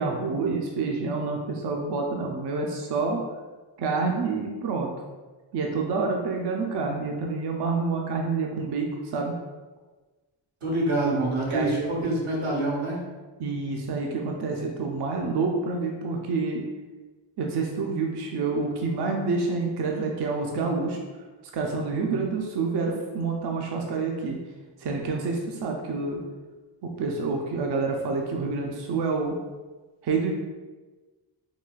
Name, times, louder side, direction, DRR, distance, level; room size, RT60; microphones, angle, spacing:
voice 1, 0.0-3.2 3.8-4.9 5.5-9.3 11.5-11.7 13.4-16.6 17.4-21.0 21.5-24.4 24.8-26.2 26.8-29.4 30.0-30.3, right 4 dB, 55° right, 1 dB, 0.5 m, -28 dB
voice 2, 10.6-13.0, right 2 dB, 85° right, -3 dB, 1.0 m, -26 dB
3.9 x 2.2 x 2.3 m, 1.3 s
cardioid pair, 65°, 49 cm